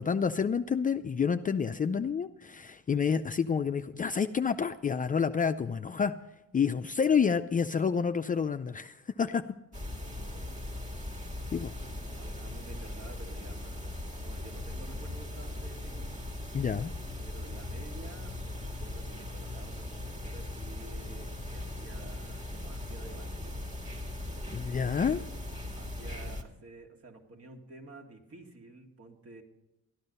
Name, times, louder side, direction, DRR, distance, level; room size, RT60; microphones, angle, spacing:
voice 1, 0.0-6.1 6.5-9.4 11.5-11.7 16.5-16.9 24.5-25.2, left 6 dB, 25° left, 9 dB, 0.4 m, -29 dB
sound 1, 9.7-26.4, left 2 dB, 25° right, 1.8 m, -39 dB
voice 2, 10.0-10.8 11.8-16.2 17.2-23.6 25.6-29.4, right 3 dB, 50° right, 2 dB, 2.2 m, -51 dB
13.0 x 10.5 x 5.5 m, 0.91 s
cardioid pair, 90°, 30 cm